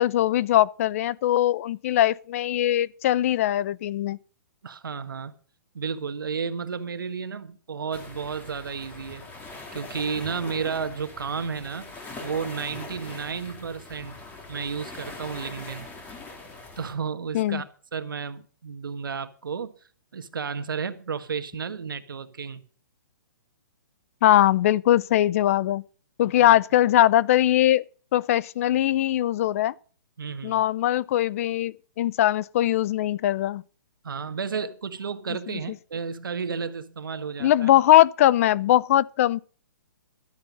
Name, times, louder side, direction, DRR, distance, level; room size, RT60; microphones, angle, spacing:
voice 1, 0.0-4.2 17.3-17.6 24.2-25.8 26.2-27.8 28.1-29.7 30.4-33.6 37.4-39.4, left 13 dB, 45° left, 0.5 m, -21 dB
voice 2, 4.6-5.3 5.7-9.3 9.7-11.9 12.2-14.2 14.5-15.9 16.8-17.6 17.9-19.7 20.1-22.6 26.4-26.6 30.2-30.6 34.0-37.7, right 6 dB, 90° right, 1.5 m, -32 dB
sound 1, 7.9-16.9, left 3 dB, 15° left, 3.0 m, -42 dB
12.5 x 9.6 x 5.4 m
hypercardioid pair, 150°, 11 cm